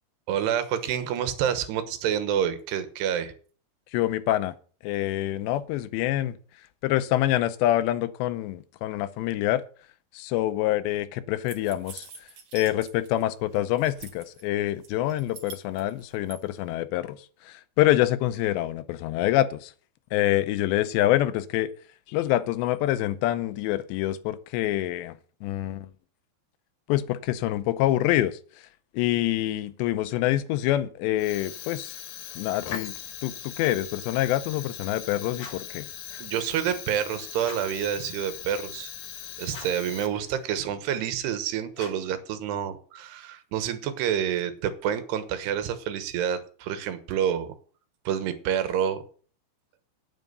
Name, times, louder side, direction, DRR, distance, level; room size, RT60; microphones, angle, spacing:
voice 1, 0.3-3.3 36.2-38.9 39.4-47.5 48.1-49.0, right 9 dB, 75° right, 11 dB, 3.2 m, -28 dB
voice 2, 3.9-4.5 4.8-6.3 6.8-9.6 10.1-12.1 12.5-17.2 17.5-19.7 20.1-21.7 22.1-25.9 26.9-28.4 28.9-32.0 32.4-32.9 33.2-35.9, left 14 dB, 90° left, 13 dB, 2.9 m, -26 dB
sound 1, 11.5-13.2 13.5-14.4 14.8-16.4, right 4 dB, 50° right, 2.1 m, -45 dB
Fire, 31.1-40.5, left 10 dB, 65° left, 2.7 m, -40 dB
sound 2, 35.3-35.8 37.4-37.8 39.5-40.0 41.7-42.2, left 3 dB, 45° left, 1.1 m, -45 dB
9.5 x 9.1 x 6.7 m, 0.44 s
omnidirectional pair, 4.9 m